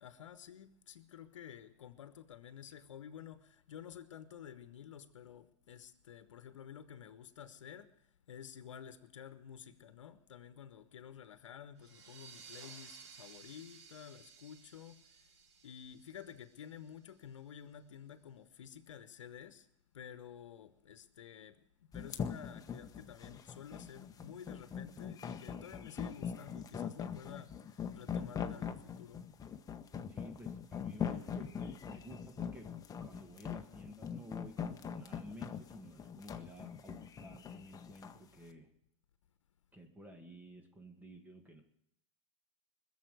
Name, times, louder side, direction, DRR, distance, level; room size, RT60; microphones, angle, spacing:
voice 1, 0.0-7.9 8.3-15.3 15.6-19.7 19.9-29.2, left 9 dB, 85° left, 1.1 m, -51 dB
sound 1, 11.8-17.1, right 6 dB, 65° right, 2.5 m, -56 dB
sound 2, 21.9-38.2, left 7 dB, 25° left, 1.2 m, -42 dB
voice 2, 30.1-32.7 33.0-38.7 39.7-41.6, equal, 10° right, 2.1 m, -53 dB
21.0 x 7.4 x 9.3 m
hypercardioid pair, 110°, 16 cm